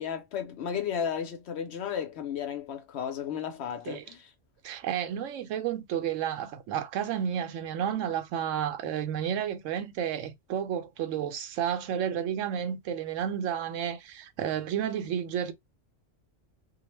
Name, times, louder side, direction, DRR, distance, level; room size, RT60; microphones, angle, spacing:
voice 1, 0.0-4.3, left 8 dB, 65° left, 0.8 m, -34 dB
voice 2, 4.6-15.5, right 9 dB, 85° right, 0.9 m, -31 dB
2.4 x 2.1 x 3.0 m
omnidirectional pair, 1.3 m